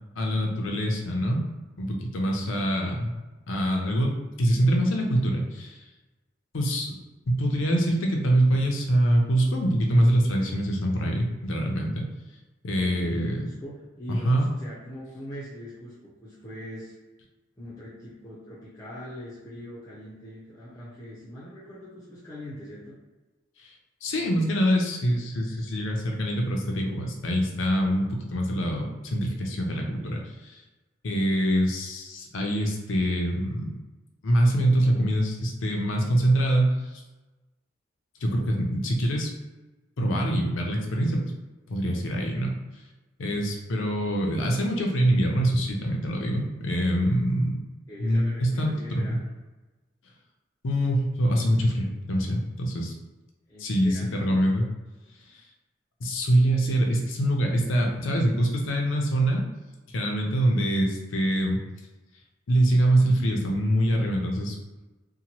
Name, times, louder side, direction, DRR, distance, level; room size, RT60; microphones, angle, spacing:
voice 1, 0.2-1.4 1.8-3.1 3.5-5.8 6.5-7.0 7.3-12.1 12.6-13.4 14.1-14.5 23.6-23.7 24.0-30.6 31.0-33.7 34.2-37.0 38.2-39.3 40.0-41.2 41.7-42.5 43.2-47.6 48.0-49.0 50.6-52.9 53.6-54.6 56.0-59.4 59.9-61.6 62.5-64.5, right 1 dB, 90° left, 1 dB, 0.6 m, -24 dB
voice 2, 12.8-17.0 17.6-22.9 47.9-49.2 53.5-54.5, equal, 15° left, -9 dB, 0.5 m, -41 dB
2.8 x 2.2 x 2.8 m, 1.1 s
head